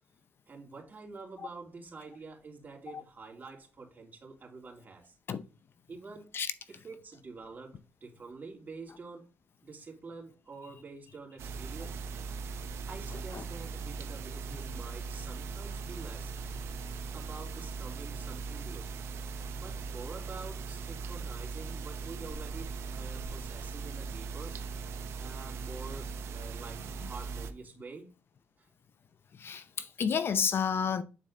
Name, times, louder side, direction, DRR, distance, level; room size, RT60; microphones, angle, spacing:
voice 1, 0.5-5.2 5.9-6.3 6.7-9.3 9.6-12.3 12.8-16.3 17.1-19.1 19.5-24.6 25.2-28.1 28.6-28.7, right 4 dB, 40° right, 2.9 m, -47 dB
sound 1, 11.4-27.5, right 4 dB, 75° right, 0.8 m, -39 dB
voice 2, 29.4-31.0, left 7 dB, 55° left, 0.6 m, -30 dB
8.9 x 4.1 x 3.8 m
supercardioid pair, 65°, 5 cm